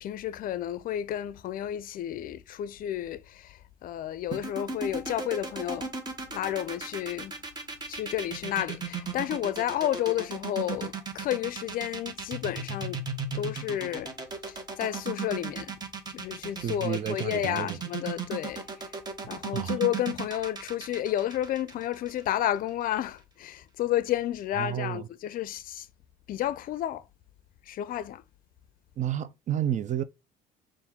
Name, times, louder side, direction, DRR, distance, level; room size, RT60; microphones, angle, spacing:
voice 1, 0.0-5.9 6.3-7.3 7.9-13.0 13.3-14.1 14.5-15.8 16.1-18.9 19.3-25.9 26.3-27.0 27.7-28.2, left 12 dB, 55° left, 0.4 m, -31 dB
sound 1, 4.3-22.4, right 4 dB, 25° right, 1.3 m, -35 dB
voice 2, 16.6-17.8 19.5-19.8 24.6-25.1 29.0-30.0, right 10 dB, 45° right, 0.5 m, -31 dB
4.2 x 2.5 x 3.6 m
cardioid pair, 110°, 17 cm